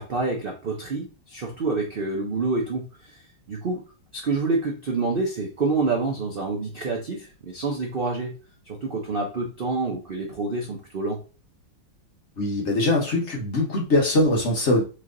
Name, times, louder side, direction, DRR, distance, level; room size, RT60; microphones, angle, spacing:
voice 1, 0.0-3.2 3.5-3.8 4.1-8.3 8.7-11.2, right 3 dB, 75° right, 0 dB, 0.5 m, -27 dB
voice 2, 12.4-14.8, left 1 dB, 45° left, -1 dB, 1.0 m, -22 dB
3.3 x 3.3 x 3.7 m, 0.35 s
omnidirectional pair, 2.1 m